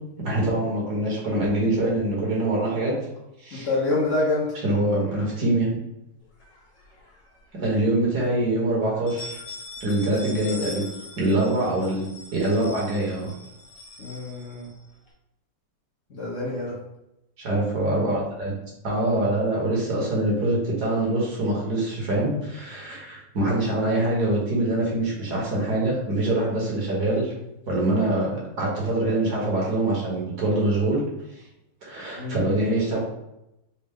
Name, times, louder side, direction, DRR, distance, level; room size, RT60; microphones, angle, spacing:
voice 1, 0.2-2.9 3.4-3.7 4.6-5.8 7.6-9.4 9.8-10.8 11.2-12.0 12.3-13.3 17.4-18.5 18.8-27.3 27.6-31.0 31.8-33.0, right 1 dB, 65° right, -4 dB, 1.7 m, -24 dB
voice 2, 3.5-4.5 10.5-10.6 14.0-14.7 16.1-16.8 32.1-32.5, left 2 dB, 55° left, -5 dB, 0.9 m, -27 dB
sound 1, 6.4-7.3 7.7-7.8 8.2-8.3 8.9-15.1, left 2 dB, 80° left, 1.7 m, -42 dB
4.3 x 2.0 x 3.5 m, 0.86 s
omnidirectional pair, 1.9 m